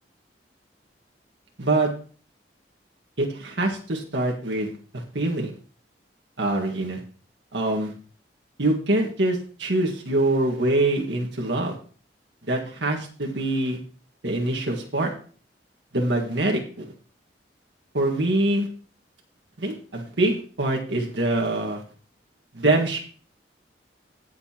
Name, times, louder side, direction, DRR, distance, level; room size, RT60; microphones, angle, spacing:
voice 1, 1.6-1.9 3.2-5.5 6.4-7.0 7.5-7.9 8.6-11.8 12.5-13.8 14.2-15.1 15.9-16.9 17.9-18.7 19.6-21.8 22.5-23.0, right 2 dB, 85° right, 1 dB, 1.7 m, -24 dB
17.0 x 7.0 x 2.9 m, 0.41 s
head